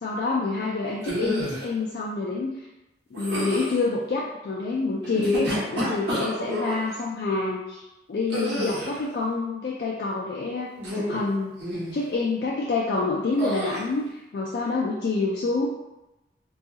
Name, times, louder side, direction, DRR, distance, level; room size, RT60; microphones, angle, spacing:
voice 1, 0.0-2.7 3.1-11.6 11.9-15.7, left 3 dB, 60° left, -4 dB, 0.3 m, -27 dB
sound 1, 1.0-1.7 3.1-3.8 5.0-6.8 8.3-9.0 10.8-11.3 11.6-12.0 13.4-13.8, equal, 75° right, 0.9 m, -29 dB
2.7 x 2.3 x 2.7 m, 0.99 s
head